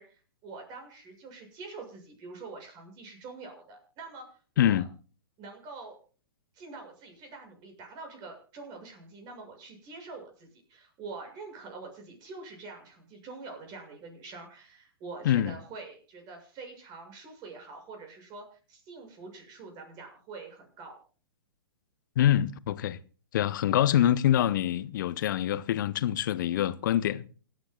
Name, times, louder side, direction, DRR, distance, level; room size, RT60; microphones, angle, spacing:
voice 1, 0.0-4.8 5.4-6.0 6.5-21.0, right 3 dB, 35° right, 6.9 m, -45 dB
voice 2, 15.2-15.5 22.2-23.0 23.3-27.3, left 11 dB, 55° left, 0.9 m, -25 dB
28.5 x 10.0 x 2.4 m
hypercardioid pair, 115°, 12 cm